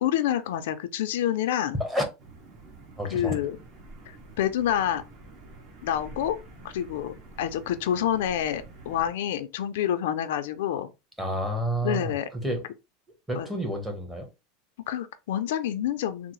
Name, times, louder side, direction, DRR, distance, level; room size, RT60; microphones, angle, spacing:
voice 1, 0.0-1.8 3.1-3.6 4.1-5.0 5.8-6.4 6.6-10.9 11.8-12.3 13.4-13.5 14.9-16.3, left 10 dB, 80° left, 0.4 m, -28 dB
sound 1, 2.2-9.1, right 2 dB, 40° right, 1.2 m, -48 dB
voice 2, 3.0-3.4 11.2-12.6 13.3-14.3, equal, 5° right, 0.9 m, -29 dB
3.6 x 2.0 x 3.0 m
supercardioid pair, 145°, 0 cm